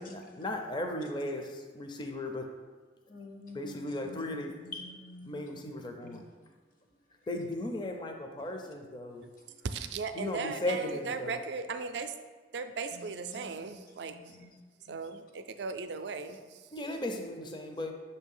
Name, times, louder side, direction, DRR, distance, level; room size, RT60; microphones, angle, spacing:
voice 1, 0.0-2.5 3.5-4.5 5.3-6.2 7.3-9.3 10.1-11.4 16.7-17.9, left 1 dB, 25° left, 3 dB, 0.4 m, -36 dB
voice 2, 3.1-6.5 9.4-9.6 12.9-14.6 14.9-15.0, left 2 dB, 50° left, 2 dB, 0.7 m, -49 dB
voice 3, 9.7-12.1 12.5-14.1 14.9-16.4, right 5 dB, 70° right, 8 dB, 0.4 m, -37 dB
6.4 x 2.7 x 5.4 m, 1.4 s
head